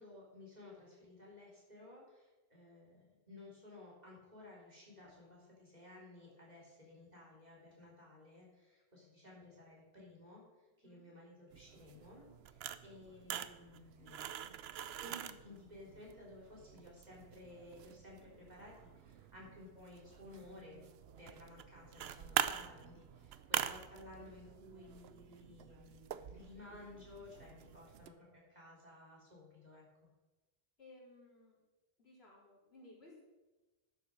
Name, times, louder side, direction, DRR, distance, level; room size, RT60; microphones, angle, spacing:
voice 1, 0.0-10.4 10.8-14.2 15.0-20.8 21.2-29.9, left 2 dB, 40° right, -4 dB, 3.8 m, -56 dB
sound 1, 11.5-28.1, right 10 dB, 80° right, 0.9 m, -45 dB
voice 2, 30.8-31.6 32.0-33.2, left 2 dB, 80° left, -5 dB, 4.0 m, -59 dB
11.0 x 7.3 x 6.3 m, 1.2 s
omnidirectional pair, 1.0 m